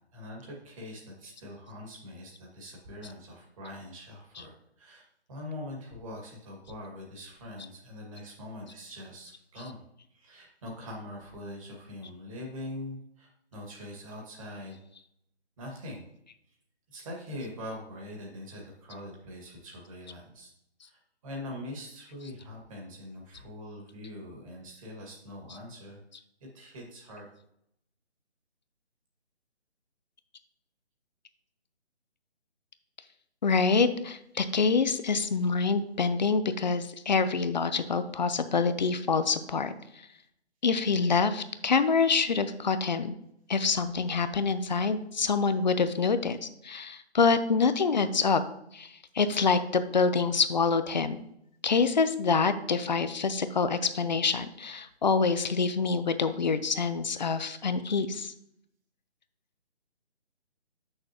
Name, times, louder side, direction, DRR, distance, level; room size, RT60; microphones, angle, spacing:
voice 1, 0.1-9.8 10.1-14.8 15.6-16.0 16.9-20.5 20.8-26.0 26.5-27.3, left 1 dB, 30° right, -2 dB, 2.1 m, -43 dB
voice 2, 33.4-39.7 40.6-43.2 43.5-48.4 48.7-51.2 51.6-58.3, left 5 dB, 40° left, 11 dB, 0.6 m, -26 dB
8.0 x 6.5 x 3.0 m, 0.76 s
figure-of-eight pair, 160°, 34 cm